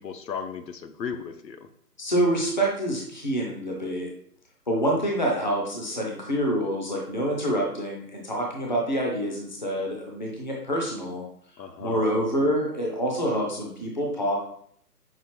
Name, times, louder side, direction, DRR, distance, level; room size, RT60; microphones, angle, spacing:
voice 1, 0.0-1.7 11.6-12.1, left 6 dB, 85° left, 8 dB, 0.7 m, -36 dB
voice 2, 2.0-4.1 4.7-11.2 11.8-14.4, right 1 dB, 30° left, -1 dB, 0.5 m, -26 dB
5.7 x 2.4 x 3.1 m, 0.63 s
figure-of-eight pair, 150°, 49 cm